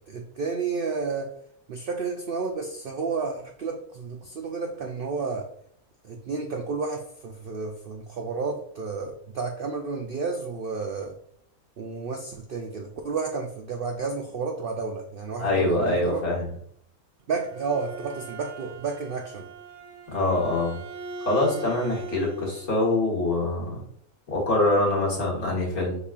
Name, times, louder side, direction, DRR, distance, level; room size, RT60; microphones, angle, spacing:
voice 1, 0.1-1.3 1.7-5.5 6.0-11.2 11.8-16.2 17.3-19.5, right 4 dB, 90° right, 3 dB, 0.4 m, -31 dB
voice 2, 15.4-16.5 20.1-20.8 21.2-23.8 24.3-26.0, left 2 dB, 75° left, -4 dB, 2.1 m, -24 dB
Bowed string instrument, 17.2-22.7, right 3 dB, 70° right, 1.1 m, -41 dB
5.4 x 4.0 x 2.4 m, 0.66 s
omnidirectional pair, 1.6 m